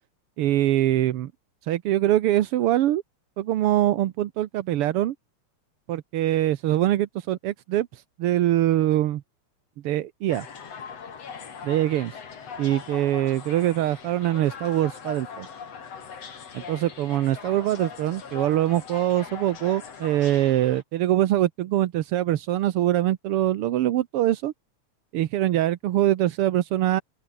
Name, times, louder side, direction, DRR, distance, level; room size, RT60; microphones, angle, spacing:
voice 1, 0.4-1.3 1.6-3.0 3.4-5.1 5.9-9.2 9.8-10.5 11.6-12.2 12.6-15.5 16.5-24.5 25.1-27.0, right 13 dB, 65° right, 1.5 m, -23 dB
sound 1, 10.3-20.8, left 6 dB, 55° left, 3.9 m, -40 dB
open air
omnidirectional pair, 3.4 m